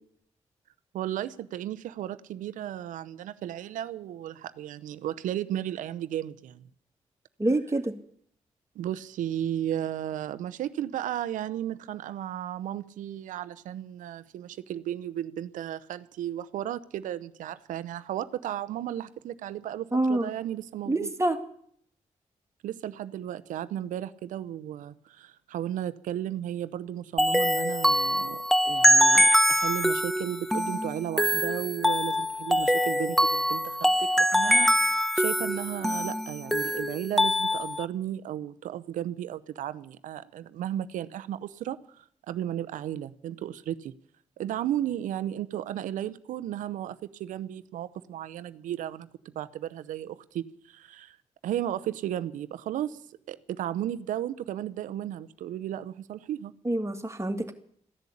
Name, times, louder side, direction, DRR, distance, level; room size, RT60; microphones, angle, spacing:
voice 1, 0.9-6.6 8.7-21.1 22.6-28.4 28.6-43.9 44.4-49.1 49.3-51.2 51.4-53.0 53.3-56.5, right 11 dB, 90° right, 0.7 m, -34 dB
voice 2, 7.4-7.9 19.9-20.3 20.9-21.4 56.6-57.5, right 1 dB, 20° right, 2.5 m, -26 dB
sound 1, 27.2-37.8, equal, ahead, 0.8 m, -24 dB
15.0 x 11.0 x 8.6 m
supercardioid pair, 45°, 13 cm